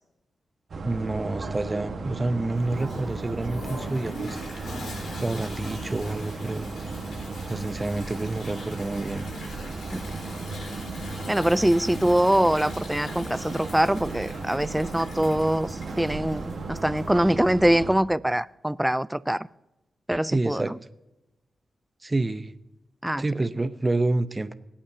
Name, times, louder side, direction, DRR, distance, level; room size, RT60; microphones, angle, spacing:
sound 1, 0.7-17.9, right 3 dB, 65° right, 1.5 m, -35 dB
voice 1, 0.8-4.4 5.2-6.7 7.5-9.3 20.3-20.7 22.0-22.5 23.2-24.5, right 2 dB, 30° right, 12 dB, 0.7 m, -28 dB
Toilet flush, 2.6-17.2, left 2 dB, 85° left, 3.9 m, -43 dB
voice 2, 11.3-19.5 20.1-20.7 23.0-23.2, right 1 dB, 5° right, 18 dB, 0.4 m, -23 dB
21.5 x 8.7 x 2.8 m, 0.95 s
cardioid pair, 55°, 0 cm